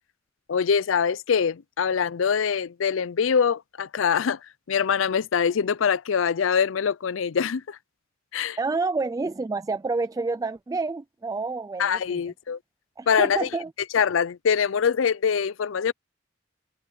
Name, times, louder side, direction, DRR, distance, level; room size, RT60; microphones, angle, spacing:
voice 1, 0.5-4.4 4.7-7.8 8.3-8.6 11.8-12.6 13.1-13.5 13.9-15.9, left 6 dB, 80° left, 0.5 m, -24 dB
voice 2, 8.6-12.2 13.0-13.7, right 3 dB, 20° right, 0.3 m, -28 dB
head